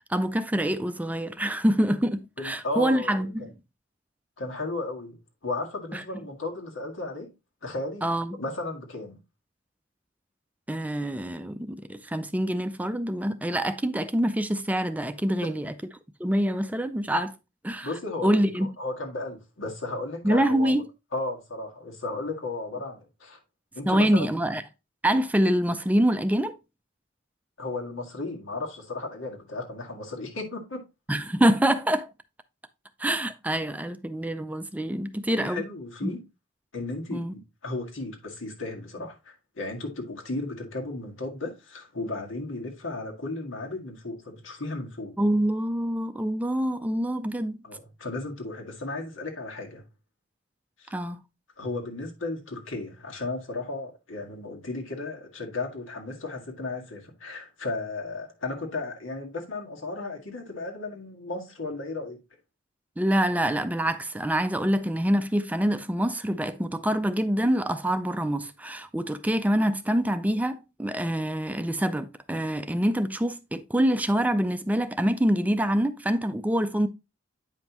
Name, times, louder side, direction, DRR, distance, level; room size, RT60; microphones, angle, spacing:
voice 1, 0.1-3.5 5.9-6.0 8.0-8.4 10.7-15.7 16.2-17.3 17.6-17.9 18.2-18.7 20.2-20.8 23.9-24.6 25.0-26.6 31.1-32.1 33.0-35.6 36.0-36.1 37.1-37.3 45.2-47.6 50.9-51.2 63.0-76.9, right 1 dB, 10° right, 0.4 m, -25 dB
voice 2, 2.4-3.5 4.4-7.3 7.6-9.2 17.8-18.5 18.8-20.8 21.1-23.4 23.8-24.3 27.6-30.8 35.4-36.2 36.7-45.2 47.6-49.8 50.8-50.9 51.6-62.2, left 2 dB, 85° left, 1.9 m, -35 dB
9.0 x 5.3 x 2.9 m
head